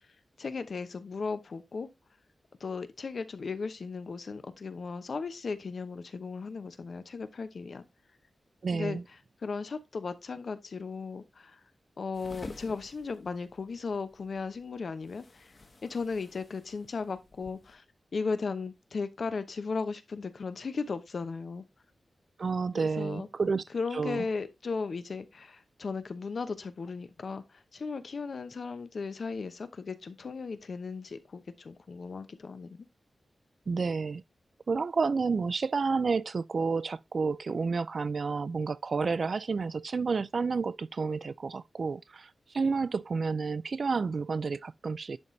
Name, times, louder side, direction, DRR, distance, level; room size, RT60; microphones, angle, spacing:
voice 1, 0.4-1.9 2.6-7.8 8.7-9.0 9.4-11.6 12.0-15.5 15.8-17.8 18.1-21.6 23.0-23.3 23.7-32.9, left 4 dB, 55° left, 0.8 m, -36 dB
voice 2, 8.6-9.0 22.4-23.6 23.9-24.3 33.7-34.2 34.7-45.2, right 4 dB, 50° right, 0.3 m, -30 dB
sound 1, 12.1-17.7, left 2 dB, 35° left, 1.2 m, -51 dB
10.5 x 4.2 x 3.2 m
wide cardioid pair, 150°, 0 cm